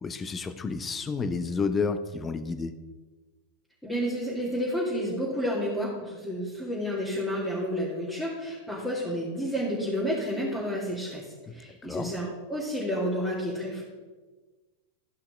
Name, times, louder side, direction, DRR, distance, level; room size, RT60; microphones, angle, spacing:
voice 1, 0.0-2.7 11.8-12.1, left 4 dB, 20° left, 10 dB, 0.7 m, -30 dB
voice 2, 3.8-11.2 11.5-13.8, equal, 5° left, -8 dB, 2.5 m, -30 dB
13.5 x 5.8 x 3.3 m, 1.3 s
hypercardioid pair, 95°, 0 cm